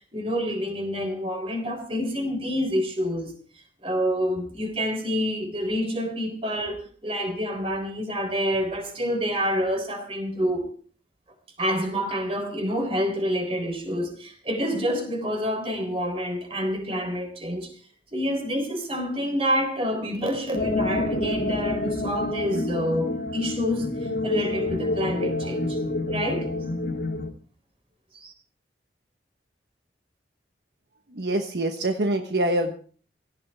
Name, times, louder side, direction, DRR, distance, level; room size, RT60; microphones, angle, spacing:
voice 1, 0.1-3.3 3.8-10.7 11.6-17.7 18.1-23.9 24.2-25.8 26.1-26.5 28.1-28.3, equal, 30° right, 5 dB, 3.9 m, -27 dB
sound 1, 20.5-27.3, left 2 dB, 70° left, 2.2 m, -28 dB
voice 2, 31.1-32.7, right 1 dB, 65° right, 5 dB, 1.2 m, -25 dB
17.5 x 15.5 x 3.6 m, 0.43 s
head